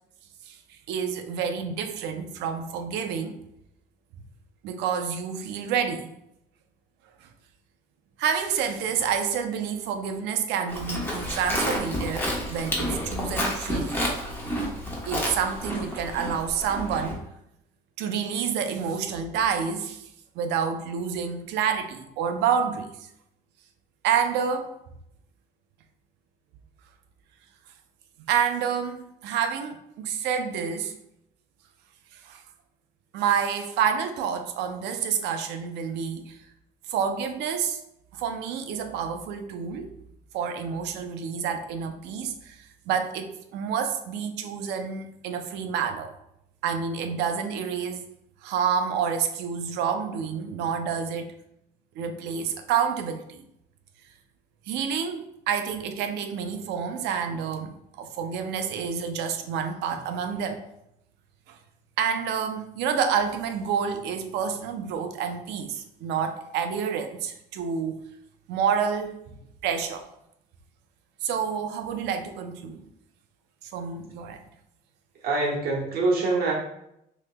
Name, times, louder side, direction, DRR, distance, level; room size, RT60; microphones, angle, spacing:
voice 1, 0.5-3.4 4.6-6.1 7.2-7.3 8.2-14.0 15.1-17.2 18.0-20.1 20.4-23.1 24.0-24.7 28.3-30.9 32.1-32.4 33.1-36.4 36.9-37.8 38.1-39.9 40.3-46.1 46.6-48.0 48.4-51.3 52.0-53.4 54.7-60.6 61.5-61.6 62.0-68.0 68.5-69.1 69.6-70.1 71.2-72.9 73.7-74.4, right 7 dB, 90° right, 6 dB, 0.6 m, -28 dB
Livestock farm animals working animals, 10.7-17.1, equal, 10° left, 1.1 m, -30 dB
voice 2, 75.2-76.5, right 3 dB, 65° right, -2 dB, 1.2 m, -24 dB
6.2 x 2.9 x 2.2 m, 0.79 s
cardioid pair, 110°, 17 cm